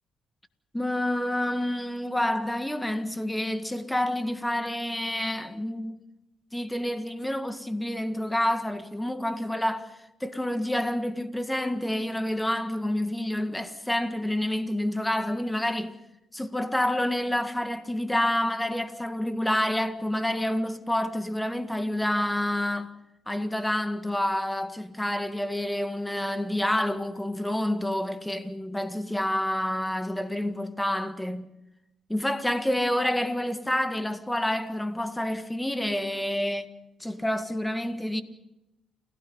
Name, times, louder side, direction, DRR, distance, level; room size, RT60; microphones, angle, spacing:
voice 1, 0.7-6.0 6.5-10.0 10.2-15.9 16.3-22.9 23.3-31.5 32.1-36.7 37.0-38.2, left 1 dB, 5° left, 1.8 m, -28 dB
29.5 x 16.5 x 5.5 m
cardioid pair, 90°, 0 cm